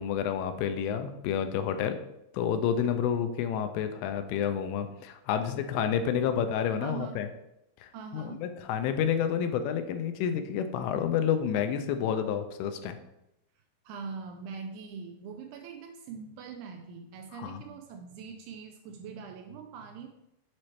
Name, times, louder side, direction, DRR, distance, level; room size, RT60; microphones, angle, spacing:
voice 1, 0.0-2.0 2.3-7.3 7.8-13.0 17.3-17.6, left 8 dB, 85° left, 8 dB, 2.8 m, -29 dB
voice 2, 6.8-7.2 7.9-8.4 13.9-20.1, right 6 dB, 85° right, 5 dB, 2.4 m, -42 dB
7.5 x 4.3 x 3.2 m, 0.86 s
omnidirectional pair, 5.0 m